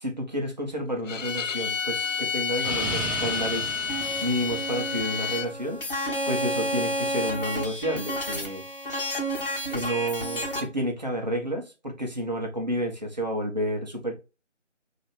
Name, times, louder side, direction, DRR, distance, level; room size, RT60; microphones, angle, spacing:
voice 1, 0.0-3.8 4.2-5.8 6.3-8.6 9.7-14.1, equal, 35° right, 0.9 m, -30 dB
Bowed string instrument, 1.1-5.5, left 6 dB, 90° left, 0.5 m, -30 dB
Explosion, 1.4-5.3, right 2 dB, ahead, 0.6 m, -36 dB
sound 1, 3.9-10.6, equal, 45° left, 1.2 m, -31 dB
3.8 x 2.8 x 3.1 m
figure-of-eight pair, 165°, 37 cm